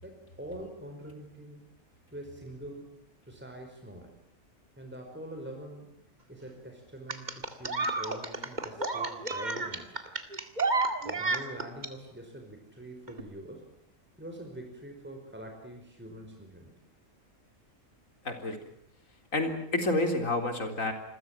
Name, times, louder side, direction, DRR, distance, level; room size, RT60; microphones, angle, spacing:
voice 1, 0.0-1.6 2.1-2.9 3.3-4.1 4.8-5.9 6.3-10.0 11.0-13.7 14.2-16.8, right 1 dB, 10° right, 2 dB, 5.1 m, -44 dB
sound 1, 7.1-11.9 13.1-13.2, right 3 dB, 35° right, 2.2 m, -31 dB
voice 2, 18.2-18.7 19.3-20.9, left 2 dB, 80° left, 6 dB, 4.3 m, -29 dB
28.5 x 22.0 x 7.4 m, 0.72 s
omnidirectional pair, 1.4 m